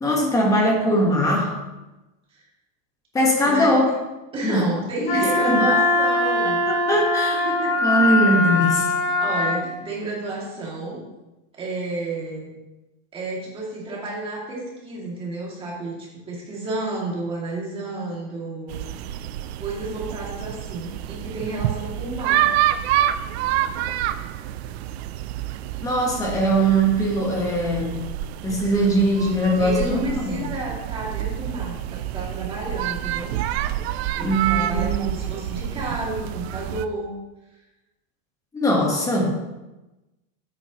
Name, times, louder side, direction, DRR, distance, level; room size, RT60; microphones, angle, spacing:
voice 1, 0.0-1.6 3.1-4.0 4.4-4.7 5.1-5.2 5.5-5.6 6.7-7.5 7.8-8.9 25.8-28.0 28.4-30.4 34.2-35.1 38.5-39.4, right 1 dB, 10° left, -1 dB, 1.3 m, -21 dB
voice 2, 4.3-6.7 7.4-8.5 9.2-11.0 11.6-12.5 13.1-16.0 16.3-18.8 19.6-22.5 29.6-33.4 34.1-37.1, right 2 dB, 15° right, -5 dB, 2.3 m, -31 dB
Wind instrument woodwind instrument, 5.1-9.6, left 2 dB, 80° left, 3.1 m, -21 dB
sound 1, 18.7-36.9, right 12 dB, 65° right, 0.6 m, -28 dB
9.6 x 8.5 x 2.9 m, 1.0 s
supercardioid pair, 175°, 35 cm